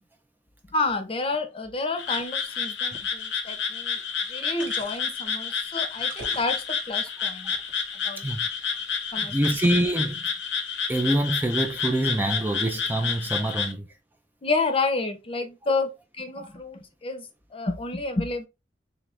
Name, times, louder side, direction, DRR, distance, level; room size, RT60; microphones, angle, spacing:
voice 1, 0.7-4.0 4.3-7.5 7.9-8.3 9.1-9.3 14.4-18.5, left 3 dB, 30° left, 0.7 m, -30 dB
Frog, 2.0-13.7, left 6 dB, 75° left, 0.8 m, -30 dB
sound 1, 2.0-2.2 2.9-3.0 4.6-5.2 6.0-7.0 7.5-8.2 9.4-10.1 10.9-11.1, right 4 dB, 75° right, 1.2 m, -44 dB
voice 2, 8.2-8.5 9.3-10.3 10.9-13.9 16.4-16.5, right 1 dB, 10° right, 0.4 m, -25 dB
3.6 x 3.3 x 3.2 m
head